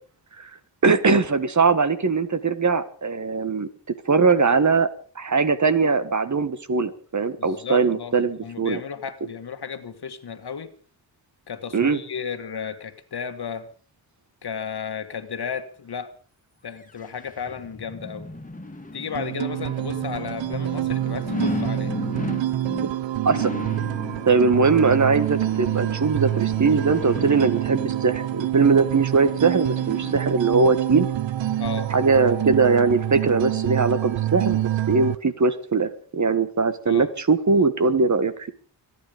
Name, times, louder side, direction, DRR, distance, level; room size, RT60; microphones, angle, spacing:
voice 1, 0.8-3.7 4.0-4.9 5.1-8.8 11.7-12.0 22.8-22.9 23.2-23.5 24.2-31.1 31.9-38.5, right 4 dB, 40° right, 12 dB, 1.5 m, -21 dB
voice 2, 7.4-10.7 11.5-13.7 14.4-16.1 16.6-18.3 18.9-22.0 31.6-31.9 36.9-37.1, left 7 dB, 60° left, 10 dB, 1.8 m, -34 dB
sound 1, 16.8-30.7 31.2-31.3, left 2 dB, 20° left, 2.2 m, -36 dB
sound 2, 19.1-35.2, right 13 dB, 90° right, 0.7 m, -27 dB
25.5 x 9.6 x 5.2 m, 0.43 s
wide cardioid pair, 95°, 43 cm